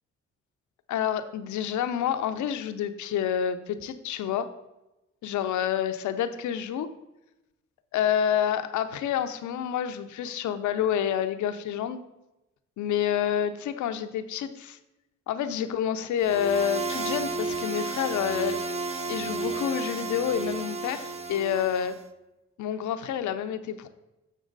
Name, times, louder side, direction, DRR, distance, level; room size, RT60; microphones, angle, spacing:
voice 1, 0.9-4.5 5.2-6.9 7.9-12.0 12.8-14.8 15.3-18.6 19.1-22.0 22.6-23.9, left 9 dB, 80° left, 10 dB, 0.6 m, -28 dB
sound 1, 16.2-22.0, right 3 dB, 20° right, 0.8 m, -32 dB
6.8 x 6.3 x 3.9 m, 0.96 s
supercardioid pair, 60°, 29 cm